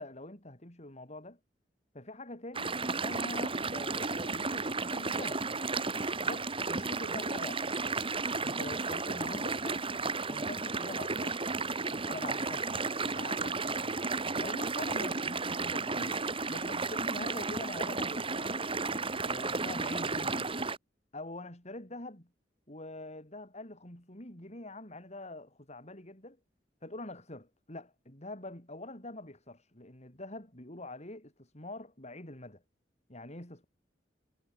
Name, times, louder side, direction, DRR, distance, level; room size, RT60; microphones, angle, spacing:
voice 1, 0.0-1.4 1.9-5.4 6.2-7.7 8.4-9.9 10.3-11.4 12.0-12.7 13.0-14.0 14.4-16.2 16.5-18.6 19.2-20.5 21.1-22.3 22.7-26.4 26.8-32.6 33.1-33.6, left 2 dB, 40° left, 6.0 m, -45 dB
sound 1, 2.5-20.8, right 3 dB, 30° right, 3.1 m, -33 dB
head